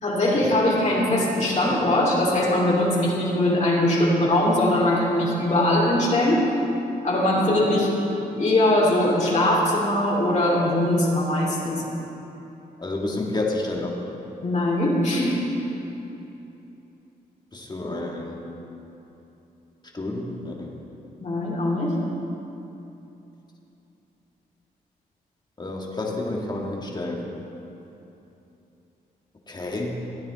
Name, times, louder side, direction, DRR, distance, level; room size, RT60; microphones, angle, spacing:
voice 1, 0.0-6.4 7.0-11.8 14.4-15.4 21.2-21.9, left 1 dB, 45° left, -4 dB, 2.8 m, -21 dB
voice 2, 12.8-14.0 17.5-18.5 19.9-20.7 25.6-27.3 29.5-30.0, left 2 dB, 25° left, -1 dB, 1.8 m, -30 dB
15.0 x 9.0 x 4.1 m, 2.9 s
cardioid pair, 75°, 17 cm